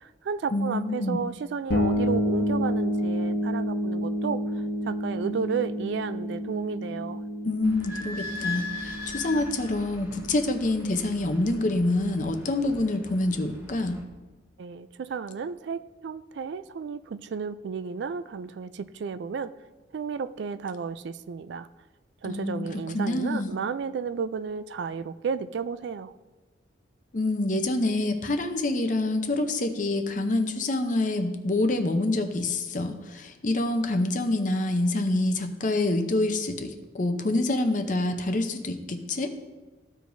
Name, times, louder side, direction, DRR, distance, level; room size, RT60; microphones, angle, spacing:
voice 1, 0.0-4.4 4.9-7.2 14.6-19.5 19.9-21.7 22.2-26.1, right 6 dB, 65° right, 14 dB, 0.3 m, -33 dB
voice 2, 0.5-1.2 7.4-14.0 22.2-23.5 27.1-39.3, left 2 dB, 40° left, 7 dB, 0.6 m, -26 dB
sound 1, 1.7-11.3, equal, 60° left, 1.2 m, -30 dB
Idling / Squeak, 7.6-14.0, left 3 dB, 15° right, 1.1 m, -40 dB
14.5 x 4.8 x 2.6 m, 1.2 s
head